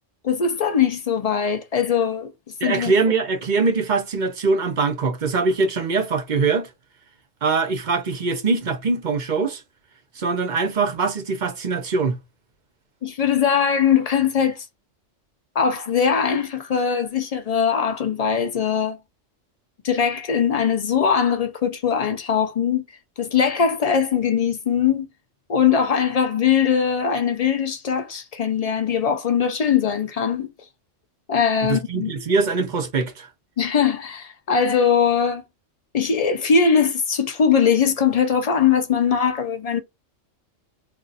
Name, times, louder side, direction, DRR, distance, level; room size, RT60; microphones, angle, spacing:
voice 1, 0.2-2.3 2.6-2.9 13.0-14.7 15.6-19.0 19.8-22.8 23.2-25.1 25.5-30.5 31.3-32.1 33.6-35.4 35.9-39.8, left 7 dB, 70° left, 0.3 m, -21 dB
voice 2, 2.6-6.7 7.4-9.6 10.2-12.2 31.7-33.3, right 4 dB, 45° right, 0.7 m, -22 dB
2.5 x 2.4 x 3.9 m
omnidirectional pair, 1.3 m